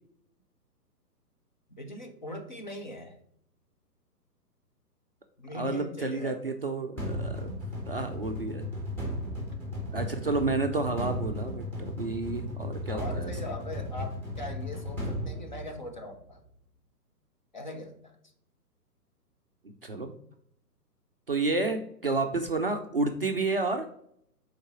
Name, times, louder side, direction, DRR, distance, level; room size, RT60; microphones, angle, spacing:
voice 1, 1.8-3.2 5.4-6.4 12.9-16.4 17.5-18.1, left 1 dB, 30° left, 4 dB, 0.5 m, -40 dB
voice 2, 5.5-7.5 7.9-8.7 9.9-13.3 19.6-20.2 21.3-23.9, right 3 dB, 40° right, 4 dB, 0.4 m, -30 dB
sound 1, 7.0-16.2, left 1 dB, 5° left, 1.0 m, -35 dB
5.2 x 4.0 x 4.6 m, 0.71 s
figure-of-eight pair, 130°, 49 cm